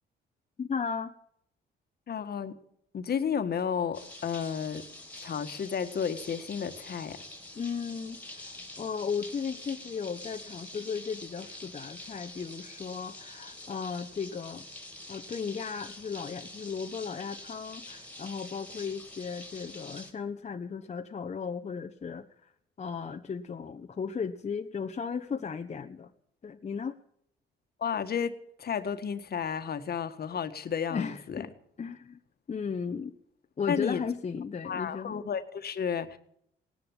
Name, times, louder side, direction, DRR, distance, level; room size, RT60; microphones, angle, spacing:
voice 1, 0.6-1.1 7.5-14.7 15.1-22.5 22.8-26.1 26.4-27.0 30.9-31.5 31.8-32.2 32.5-33.1 33.6-35.2, left 6 dB, 35° left, 5 dB, 1.1 m, -35 dB
voice 2, 2.1-2.5 2.9-4.8 5.2-7.2 27.8-28.3 28.6-31.4 33.7-34.0 34.6-36.2, left 7 dB, 50° left, 9 dB, 1.7 m, -32 dB
sound 1, 3.9-20.1, left 1 dB, 10° left, 3.2 m, -46 dB
18.5 x 10.5 x 7.3 m, 0.71 s
cardioid pair, 90°, 20 cm